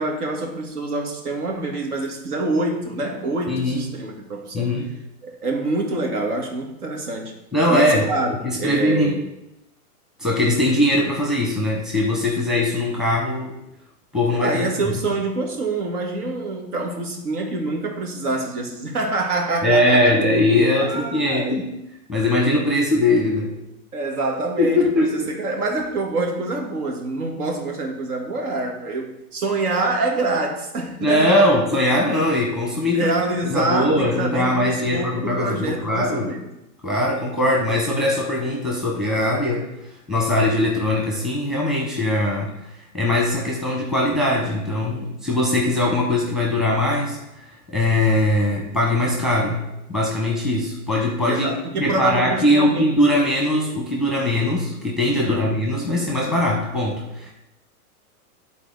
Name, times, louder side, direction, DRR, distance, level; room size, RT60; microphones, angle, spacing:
voice 1, 0.0-4.7 5.2-7.3 7.7-9.2 14.4-20.1 20.8-21.6 23.9-31.5 32.9-36.4 51.2-53.0 55.2-55.5, right 2 dB, 85° right, 2 dB, 1.8 m, -26 dB
voice 2, 3.5-3.8 4.5-4.9 7.5-8.1 8.4-9.2 10.2-13.6 14.1-14.7 19.6-21.7 22.1-23.5 24.6-25.3 31.0-33.1 33.4-36.3 36.8-39.7 40.1-42.5 42.9-47.4 47.7-49.6 49.9-57.3, left 1 dB, ahead, -3 dB, 0.8 m, -21 dB
11.0 x 4.1 x 3.9 m, 0.88 s
hypercardioid pair, 155°, 44 cm